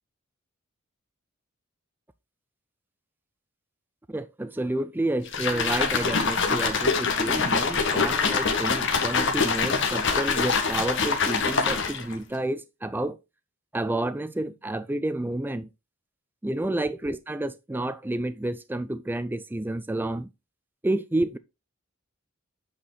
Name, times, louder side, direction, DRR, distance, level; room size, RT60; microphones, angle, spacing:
voice 1, 4.1-13.2 13.7-15.7 16.4-20.3 20.8-21.4, right 1 dB, 10° right, 0.4 m, -30 dB
sound 1, 5.3-12.1, left 5 dB, 60° left, 1.6 m, -24 dB
8.6 x 4.9 x 3.9 m
head